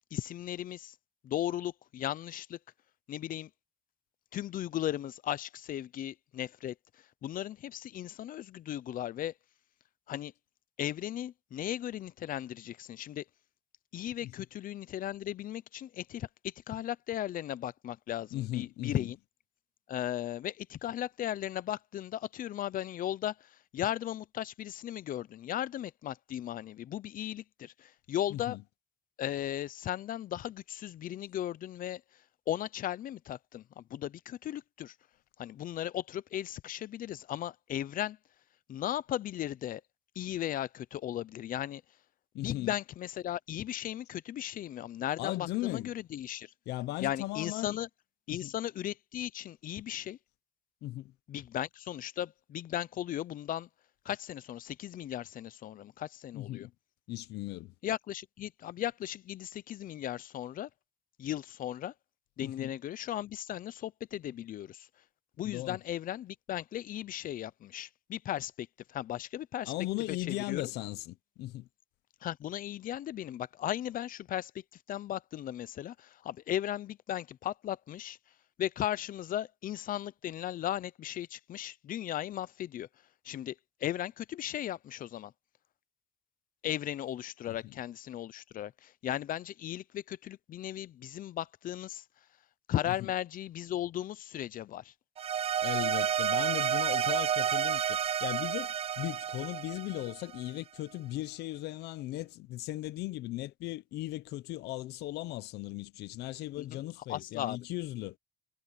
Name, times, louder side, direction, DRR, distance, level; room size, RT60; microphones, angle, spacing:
voice 1, 0.1-0.9 1.2-2.6 3.1-3.5 4.3-9.3 10.1-10.3 10.8-13.2 13.9-19.2 19.9-28.6 29.2-32.0 32.5-34.9 35.4-38.2 38.7-39.8 40.2-41.8 42.4-46.5 47.0-47.9 48.3-50.2 51.3-53.7 54.0-56.7 57.8-60.7 61.2-61.9 62.4-64.9 65.4-69.7 70.3-70.6 72.2-74.6 74.9-78.2 78.6-82.9 83.2-85.3 86.6-92.0 92.7-94.9 106.5-106.8 107.1-107.6, left 12 dB, 55° left, 0.7 m, -36 dB
voice 2, 18.3-19.1 28.3-28.6 42.3-42.7 45.2-45.9 46.7-47.8 48.3-48.5 50.8-51.1 56.3-56.7 57.1-57.7 62.4-62.7 65.4-65.8 69.7-71.7 87.5-87.7 92.9-93.1 95.6-108.2, left 17 dB, 80° left, 0.8 m, -37 dB
sound 1, 95.2-100.5, right 9 dB, 35° right, 0.5 m, -30 dB
cardioid pair, 110°, 17 cm